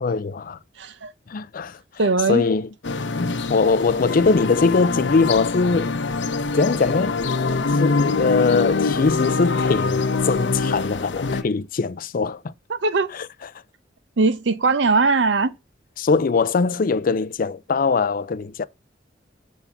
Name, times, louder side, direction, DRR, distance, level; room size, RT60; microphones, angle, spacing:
voice 1, 0.0-0.6 1.3-1.8 2.3-2.7 3.1-6.0 6.5-7.2 7.8-12.5 13.1-13.3 16.0-18.7, left 4 dB, 50° left, 0.4 m, -21 dB
voice 2, 0.8-1.1 2.0-2.4 12.7-13.1 14.2-15.5, right 3 dB, 80° right, 0.7 m, -20 dB
sound 1, 2.8-11.4, left 4 dB, 80° left, 0.8 m, -24 dB
7.2 x 3.6 x 5.7 m
head